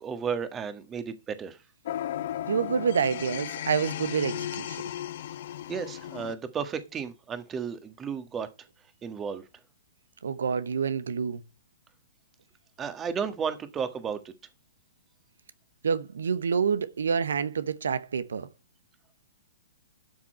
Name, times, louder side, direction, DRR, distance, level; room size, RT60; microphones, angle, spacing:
voice 1, 0.0-1.6 5.7-8.5 9.0-9.4 12.8-14.3, right 6 dB, 20° right, 1.6 m, -33 dB
sound 1, 1.8-6.3, left 11 dB, 55° left, 1.0 m, -35 dB
voice 2, 2.5-4.8 10.2-11.4 15.8-18.5, right 6 dB, 70° right, 1.1 m, -27 dB
12.5 x 6.0 x 4.4 m
figure-of-eight pair, 120°, 0 cm